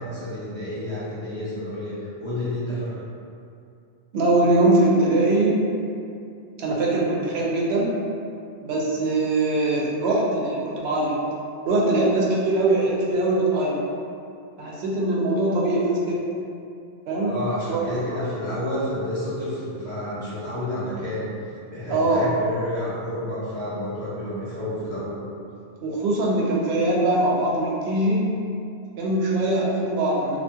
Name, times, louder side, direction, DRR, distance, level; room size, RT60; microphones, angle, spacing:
voice 1, 0.0-2.9 17.2-21.3 21.7-25.2, left 1 dB, 35° left, -12 dB, 0.6 m, -30 dB
voice 2, 4.1-5.7 6.6-8.0 8.6-11.2 11.6-13.8 14.6-16.2 17.1-17.3 17.7-17.8 18.1-18.2 21.9-22.3 25.8-28.2 29.0-30.4, right 2 dB, 80° right, -4 dB, 0.8 m, -22 dB
2.6 x 2.4 x 2.3 m, 2.5 s
omnidirectional pair, 1.1 m